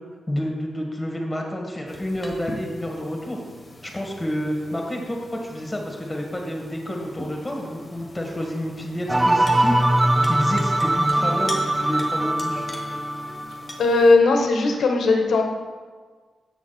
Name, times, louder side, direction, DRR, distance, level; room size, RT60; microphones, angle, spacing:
voice 1, 0.3-3.4 3.8-9.8 10.2-12.7, equal, 15° left, 0 dB, 1.9 m, -29 dB
sound 1, 1.9-14.1, left 1 dB, 35° left, 1.3 m, -42 dB
sound 2, 9.1-13.7, right 1 dB, 15° right, 0.5 m, -21 dB
voice 2, 13.8-15.4, left 3 dB, 80° left, 3 dB, 1.0 m, -17 dB
7.1 x 6.2 x 4.2 m, 1.5 s
cardioid pair, 60°, 0 cm